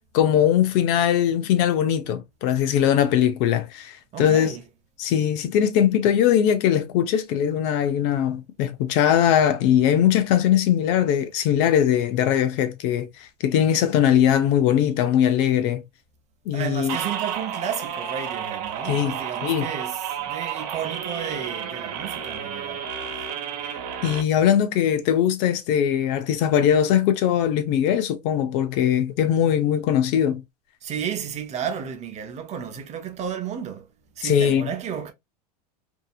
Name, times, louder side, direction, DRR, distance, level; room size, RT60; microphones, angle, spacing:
voice 1, 0.1-4.5 5.0-15.8 16.5-17.0 18.9-19.7 23.6-23.8 24.0-30.4 34.2-34.7, left 9 dB, 55° left, 0.7 m, -21 dB
voice 2, 4.1-4.6 16.5-22.9 23.1-23.2 30.8-33.9 34.2-35.1, right 8 dB, 35° right, 0.7 m, -32 dB
sound 1, 16.9-24.2, right 8 dB, 65° right, 0.9 m, -31 dB
2.8 x 2.6 x 2.3 m
hypercardioid pair, 100°, 20 cm